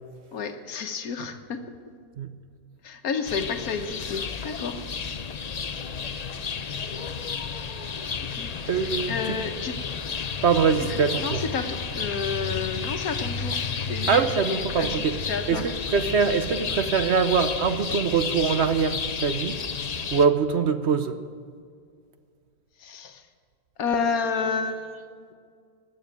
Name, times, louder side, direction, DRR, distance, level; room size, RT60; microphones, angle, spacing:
voice 1, 0.3-1.6 2.8-4.8 8.2-9.8 10.8-13.6 13.9-15.7 22.8-23.2 23.8-25.0, left 5 dB, 65° left, 7 dB, 1.5 m, -31 dB
sound 1, 3.2-20.3, left 5 dB, 85° left, 0.3 m, -32 dB
voice 2, 8.7-9.1 10.4-11.4 14.1-15.2 15.5-19.6 20.1-21.2, right 6 dB, 55° right, 9 dB, 0.8 m, -23 dB
20.0 x 7.9 x 9.1 m, 2.1 s
omnidirectional pair, 1.7 m